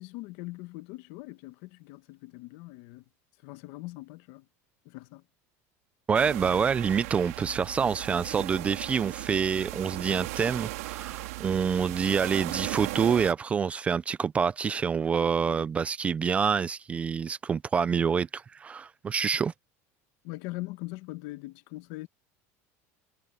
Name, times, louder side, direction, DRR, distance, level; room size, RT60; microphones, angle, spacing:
voice 1, 0.0-3.0 3.4-4.4 4.8-5.2 20.2-22.1, left 21 dB, 60° left, 1.1 m, -41 dB
voice 2, 6.1-19.5, right 6 dB, 15° right, 0.3 m, -27 dB
sound 1, 6.1-13.3, right 21 dB, 85° right, 3.5 m, -37 dB
cardioid pair, 160°, 8 cm